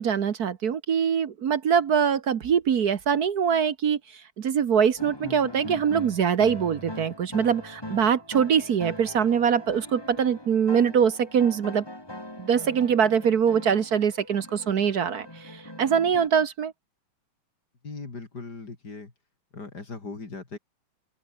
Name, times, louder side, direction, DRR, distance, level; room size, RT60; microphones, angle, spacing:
voice 1, 0.0-11.8 12.4-16.7, right 7 dB, 55° right, 1.5 m, -23 dB
sound 1, 5.0-16.3, left 1 dB, 10° left, 3.7 m, -41 dB
voice 2, 17.8-19.1 19.5-20.6, left 4 dB, 50° left, 3.9 m, -39 dB
omnidirectional pair, 2.3 m